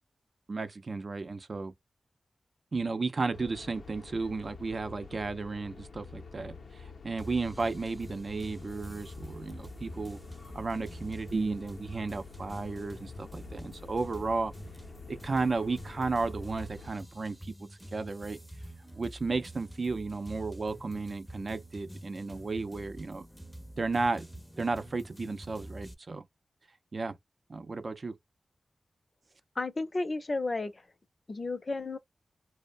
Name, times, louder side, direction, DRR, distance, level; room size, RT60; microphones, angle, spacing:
voice 1, 0.5-1.7 2.7-10.2 10.5-14.5 15.1-18.4 19.0-23.3 23.8-24.3 24.6-26.2 26.9-27.2 27.5-28.2, right 3 dB, 55° right, 0.4 m, -33 dB
sound 1, 3.3-16.9, left 5 dB, 90° left, 0.6 m, -48 dB
sound 2, 7.2-25.9, right 1 dB, ahead, 0.5 m, -47 dB
voice 2, 29.6-30.8 31.3-32.0, left 3 dB, 45° left, 0.5 m, -32 dB
2.7 x 2.0 x 2.4 m
cardioid pair, 60°, 0 cm